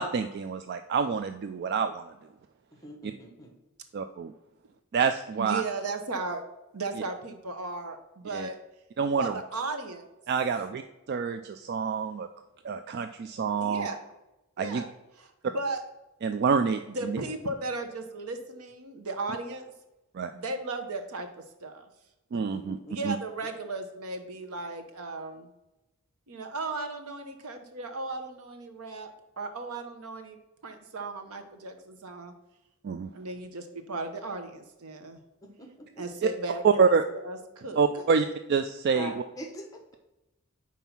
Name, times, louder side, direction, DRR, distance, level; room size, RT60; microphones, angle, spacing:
voice 1, 0.0-2.1 3.0-3.1 3.9-4.3 4.9-5.6 8.3-8.5 9.0-9.3 10.3-10.8 11.1-12.3 12.6-13.9 14.6-14.8 16.2-17.2 20.1-20.3 22.3-22.8 23.0-23.2 32.8-33.1 36.2-36.3 36.6-37.0 37.8-39.1, right 5 dB, 50° right, 9 dB, 0.3 m, -27 dB
voice 2, 2.8-3.5 22.3-23.0 35.4-35.9 38.9-39.1 39.4-39.8, equal, 15° left, 2 dB, 1.1 m, -42 dB
voice 3, 5.3-6.4 6.7-8.6 9.2-10.0 13.6-14.0 14.6-14.9 15.2-15.3 15.5-15.8 16.9-19.7 20.3-21.3 21.6-21.9 22.9-25.5 26.3-30.4 30.6-32.3 33.1-35.2 36.0-38.0, right 3 dB, 90° right, 7 dB, 0.9 m, -36 dB
5.5 x 4.6 x 5.9 m, 0.99 s
head